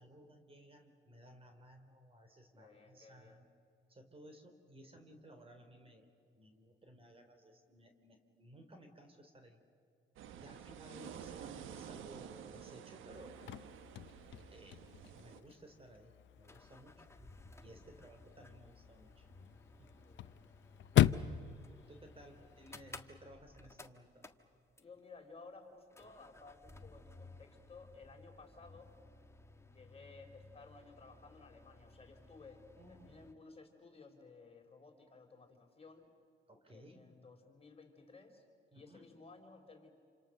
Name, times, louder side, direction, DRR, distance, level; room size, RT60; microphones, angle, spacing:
voice 1, 0.0-3.5 3.9-9.6 10.4-13.4 14.5-14.8 15.1-17.1 17.6-19.3 19.8-19.9 21.1-21.3 21.9-24.3 32.8-33.3 36.5-37.0 38.7-39.1, right 1 dB, 30° right, 6 dB, 3.4 m, -58 dB
voice 2, 2.6-3.4 10.4-10.8 17.8-18.1 20.0-20.4 22.4-22.5 24.8-28.9 29.5-36.1 36.7-38.4 38.7-39.9, left 3 dB, 30° left, 3 dB, 4.2 m, -57 dB
sound 1, 10.2-15.4, right 8 dB, 85° right, 1.3 m, -50 dB
Chirp tweet / Car / Slam, 13.1-23.1, left 13 dB, 70° left, 0.7 m, -38 dB
sound 2, 15.0-15.1 15.3-15.4 16.2-25.2 25.9-33.3, left 2 dB, 15° left, 1.5 m, -58 dB
28.0 x 26.5 x 6.7 m, 2.4 s
cardioid pair, 90°, 20 cm